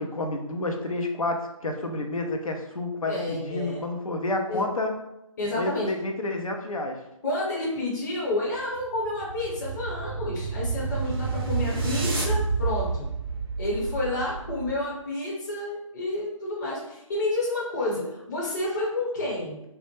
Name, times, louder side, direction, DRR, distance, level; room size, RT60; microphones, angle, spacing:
voice 1, 0.0-4.9 5.6-7.0, left 2 dB, 90° left, 3 dB, 0.5 m, -29 dB
voice 2, 3.1-3.9 4.5-4.6 5.4-5.9 7.2-13.1 13.6-19.6, left 2 dB, 35° left, -5 dB, 0.8 m, -30 dB
sound 1, 8.6-14.9, right 4 dB, 45° right, 0.4 m, -29 dB
2.2 x 2.0 x 3.0 m, 0.86 s
figure-of-eight pair, 145°, 17 cm